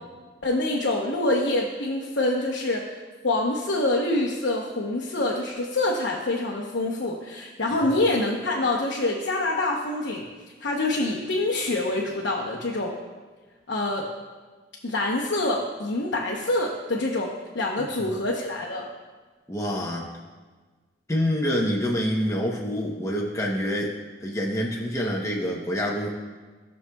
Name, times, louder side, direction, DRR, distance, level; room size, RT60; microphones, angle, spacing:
voice 1, 0.4-2.9 3.2-10.2 10.6-13.0 13.7-14.1 14.8-18.9, left 2 dB, 80° left, -3 dB, 0.9 m, -26 dB
voice 2, 17.8-18.1 19.5-20.1 21.1-23.9 24.2-26.1, equal, 15° left, -2 dB, 0.8 m, -27 dB
14.0 x 6.5 x 2.3 m, 1.4 s
head